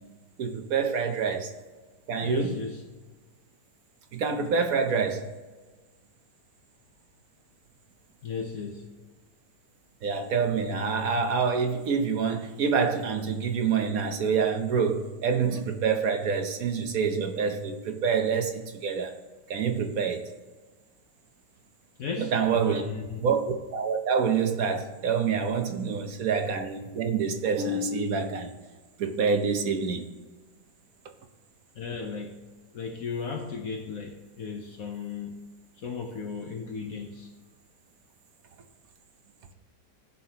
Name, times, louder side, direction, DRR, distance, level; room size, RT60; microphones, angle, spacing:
voice 1, 0.4-1.5 2.1-2.5 4.1-5.3 10.0-19.1 19.5-20.2 22.2-22.8 23.2-28.5 29.0-30.1, right 5 dB, 60° right, 1.1 m, -27 dB
voice 2, 2.2-2.9 8.2-8.9 22.0-23.3 31.7-32.3 32.7-35.4 35.8-37.3, left 5 dB, 60° left, 1.2 m, -35 dB
16.5 x 5.5 x 2.9 m
omnidirectional pair, 1.8 m